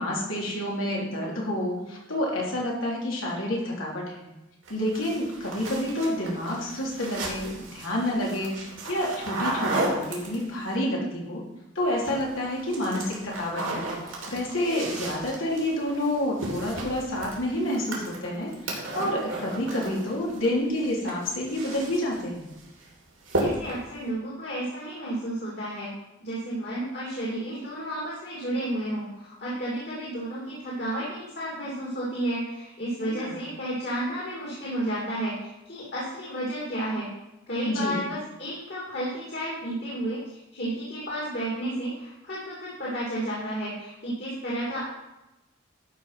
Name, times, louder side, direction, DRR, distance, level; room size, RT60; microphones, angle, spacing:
voice 1, 0.0-4.3 4.7-11.4 11.8-22.5 33.0-33.4 37.6-38.0, left 1 dB, 90° left, -3 dB, 3.4 m, -29 dB
sound 1, 4.7-10.7 11.8-12.3 12.6-20.5 20.8-22.2 22.6-22.9 23.2-23.9, right 2 dB, 90° right, 3.2 m, -34 dB
voice 2, 23.4-25.9 26.2-37.1 37.5-44.8, right 1 dB, 55° left, -6 dB, 2.6 m, -32 dB
12.0 x 5.5 x 5.8 m, 0.99 s
head